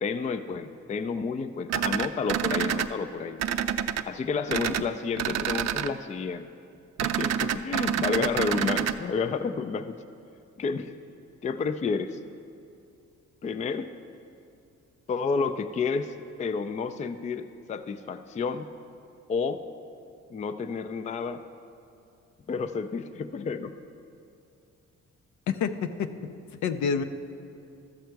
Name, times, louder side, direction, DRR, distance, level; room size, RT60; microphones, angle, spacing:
voice 1, 0.0-3.4 4.0-6.5 7.0-10.0 10.6-10.9 11.4-12.2 13.4-13.9 15.1-18.7 19.3-19.6 20.3-21.4 22.5-23.7, left 5 dB, 25° left, 11 dB, 0.4 m, -30 dB
sound 1, 1.7-2.9 3.4-4.0 4.5-4.8 5.2-5.9 7.0-8.9, right 9 dB, 60° right, 0.4 m, -27 dB
voice 2, 25.5-26.1 26.6-27.0, left 6 dB, 70° left, 9 dB, 0.6 m, -27 dB
13.0 x 6.5 x 4.6 m, 2.5 s
cardioid pair, 90°, 30 cm